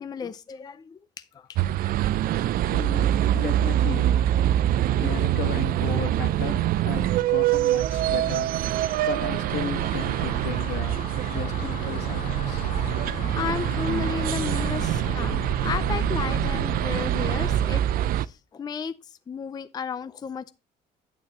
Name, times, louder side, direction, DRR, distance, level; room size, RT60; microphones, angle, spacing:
voice 1, 0.0-1.6 2.0-2.1 13.3-17.8 18.2-20.5, left 6 dB, 25° left, 0.4 m, -33 dB
sound 1, 1.6-18.3, right 12 dB, 60° right, 0.4 m, -25 dB
voice 2, 2.7-4.1 4.9-12.7, left 8 dB, 80° left, 1.4 m, -35 dB
sound 2, 7.9-17.7, left 3 dB, 50° left, 1.9 m, -37 dB
8.9 x 8.8 x 2.8 m
cardioid pair, 110°, 17 cm